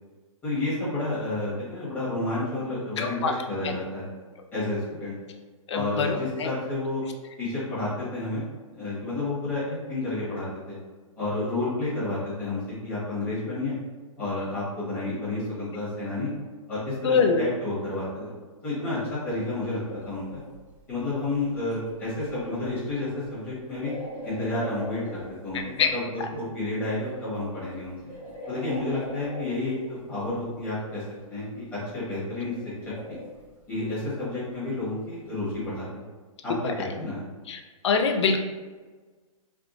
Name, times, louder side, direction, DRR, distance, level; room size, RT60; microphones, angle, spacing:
voice 1, 0.4-4.1 4.5-5.1 5.7-7.0 7.4-8.4 8.7-10.8 11.2-13.8 14.2-16.3 16.7-18.3 18.6-19.8 20.0-20.4 20.9-23.9 24.2-27.9 28.5-31.0 31.3-32.5 33.1-33.2 33.7-36.0 36.4-37.2, left 2 dB, 10° left, -12 dB, 1.2 m, -30 dB
voice 2, 3.0-3.4 3.6-3.8 5.7-6.5 17.0-17.4 25.5-25.9 36.6-36.7 37.5-38.4, left 5 dB, 55° left, 5 dB, 0.4 m, -24 dB
sound 1, 19.1-19.2 19.4-26.6 27.0-30.6 31.1-35.7, left 1 dB, 10° right, 0.8 m, -42 dB
3.5 x 2.3 x 2.5 m, 1.4 s
hypercardioid pair, 165°, 18 cm